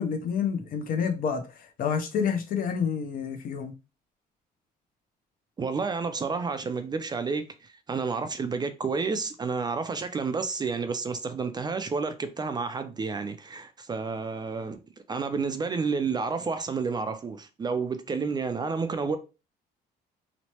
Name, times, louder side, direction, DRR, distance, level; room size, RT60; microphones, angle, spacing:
voice 1, 0.0-3.7, left 7 dB, 55° left, 0.6 m, -28 dB
voice 2, 5.6-14.8 15.1-19.2, right 4 dB, 25° right, 0.4 m, -30 dB
3.0 x 2.1 x 2.8 m
cardioid pair, 110°, 17 cm